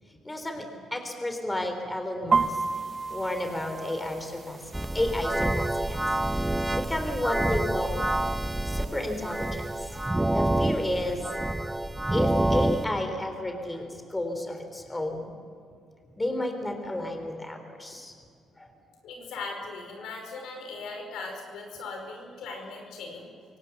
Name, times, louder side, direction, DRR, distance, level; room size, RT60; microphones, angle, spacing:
voice 1, 0.3-2.6 3.1-4.6 4.9-8.1 8.7-11.8 12.1-15.3 16.2-18.1 18.6-18.7, left 1 dB, 15° left, 5 dB, 3.4 m, -32 dB
sound 1, 2.3-10.1, right 4 dB, 40° right, 1.0 m, -34 dB
sound 2, 4.7-12.8, right 1 dB, 10° right, 0.8 m, -27 dB
voice 2, 19.0-23.3, left 3 dB, 85° left, 2 dB, 5.1 m, -39 dB
24.5 x 18.5 x 7.0 m, 2.3 s
cardioid pair, 90°, 0 cm